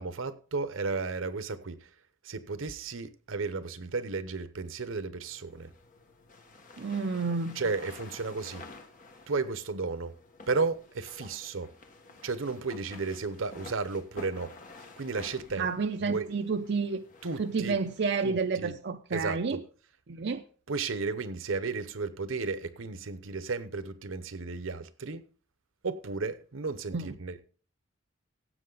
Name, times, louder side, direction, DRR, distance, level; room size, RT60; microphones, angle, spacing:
voice 1, 0.0-1.9 2.2-5.7 7.6-8.6 9.3-10.1 10.5-11.7 12.2-14.5 15.0-15.7 16.1-16.3 17.2-17.8 18.2-18.7 19.1-19.4 20.7-25.2 25.8-27.4, right 4 dB, 85° right, 0.9 m, -33 dB
sound 1, 5.2-18.0, left 3 dB, 40° left, 1.4 m, -51 dB
voice 2, 6.8-7.6 15.6-17.1 17.4-19.6 20.1-20.4 26.9-27.1, right 4 dB, 60° right, 0.5 m, -30 dB
16.0 x 7.5 x 3.9 m
head